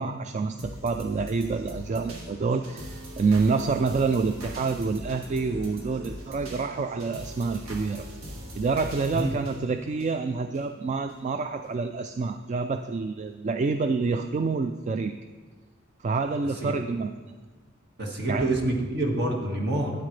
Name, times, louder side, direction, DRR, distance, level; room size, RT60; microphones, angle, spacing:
voice 1, 0.0-8.1 8.6-15.1 16.0-17.1 18.3-18.5, right 4 dB, 35° right, 8 dB, 0.3 m, -27 dB
sound 1, 0.6-10.6 11.1-11.2, equal, 80° right, 1.7 m, -41 dB
voice 2, 18.0-19.9, right 1 dB, 55° right, 0 dB, 1.8 m, -27 dB
12.5 x 9.2 x 3.3 m, 1.4 s
head